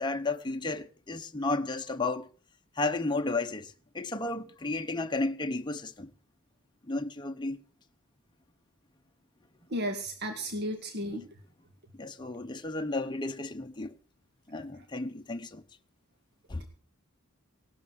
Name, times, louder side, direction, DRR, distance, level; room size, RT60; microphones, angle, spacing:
voice 1, 0.0-2.3 2.8-6.1 6.9-7.6 11.9-14.0 14.5-15.6 16.5-16.6, left 2 dB, 20° left, 0.9 m, -33 dB
voice 2, 9.7-11.3, equal, 50° right, 2.1 m, -33 dB
17.5 x 12.0 x 4.7 m
head